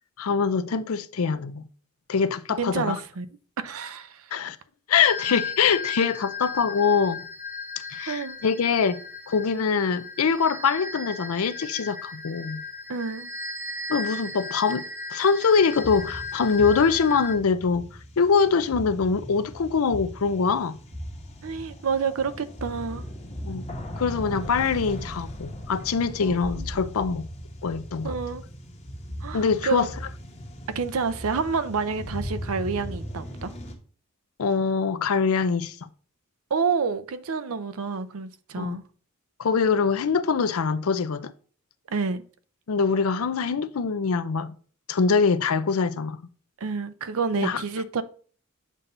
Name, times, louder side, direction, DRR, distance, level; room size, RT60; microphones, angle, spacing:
voice 1, 0.2-1.7 2.1-3.0 4.3-4.6 4.9-7.2 7.9-9.0 9.3-12.6 13.9-17.9 18.2-20.8 23.4-23.6 24.0-27.3 27.6-28.1 29.3-29.9 34.4-35.9 38.6-38.8 39.4-41.3 42.7-44.5 44.9-46.2 47.4-47.6, left 5 dB, 75° left, 0.5 m, -24 dB
voice 2, 2.6-3.3 3.6-4.3 8.1-8.4 12.9-13.3 21.4-23.0 26.2-26.7 28.0-28.4 29.2-29.9 30.7-33.5 36.5-38.8 41.9-42.2 46.6-48.0, right 5 dB, 75° right, 0.5 m, -28 dB
sound 1, 5.0-17.4, left 4 dB, 10° right, 1.0 m, -36 dB
sound 2, 15.7-33.7, equal, 30° left, 1.2 m, -38 dB
7.4 x 2.6 x 5.4 m
head